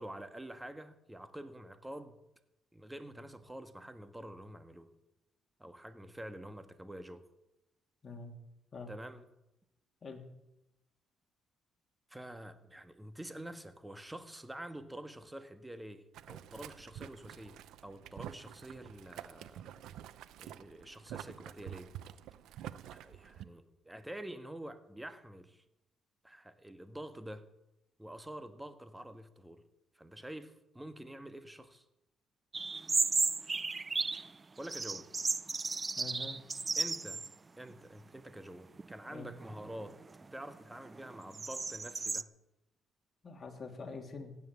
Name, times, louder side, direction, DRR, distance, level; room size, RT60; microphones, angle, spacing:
voice 1, 0.0-2.2 2.7-4.9 5.6-7.2 8.9-9.3 12.1-19.7 20.4-21.9 22.9-25.6 26.2-27.5 28.0-29.6 29.9-31.8 34.6-35.1 36.8-37.3 37.6-42.3, right 1 dB, 10° right, 9 dB, 1.4 m, -47 dB
voice 2, 8.0-8.3 8.7-8.9 10.0-10.3 36.0-36.4 39.1-39.3 43.2-44.4, left 4 dB, 35° left, 2 dB, 3.1 m, -45 dB
Boiling, 16.1-23.5, right 11 dB, 85° right, 0.7 m, -48 dB
sound 1, 32.5-34.3 34.6-37.3 37.7-37.8 38.5-38.9 39.4-42.2, right 4 dB, 30° right, 0.5 m, -34 dB
16.0 x 9.6 x 7.3 m, 0.90 s
cardioid pair, 90°, 0 cm